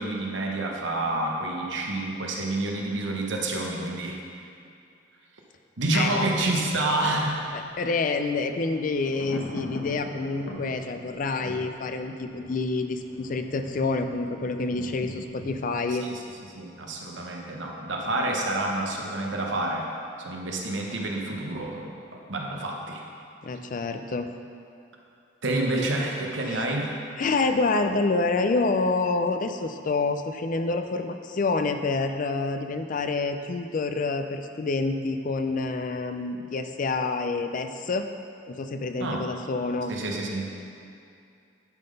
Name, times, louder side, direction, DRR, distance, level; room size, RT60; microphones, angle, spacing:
voice 1, 0.0-4.2 5.8-7.4 16.0-16.2 16.5-19.9 20.2-23.0 25.4-27.0 39.0-39.3 39.9-40.5, right 2 dB, 80° right, 0 dB, 1.0 m, -28 dB
voice 2, 5.9-6.3 7.5-16.1 23.4-24.3 26.5-26.6 27.2-38.1 38.5-39.9, left 3 dB, 45° left, 7 dB, 0.4 m, -27 dB
Thunder, 7.2-17.1 17.4-17.5, left 1 dB, 80° left, 1.0 m, -43 dB
10.5 x 3.9 x 5.2 m, 2.5 s
head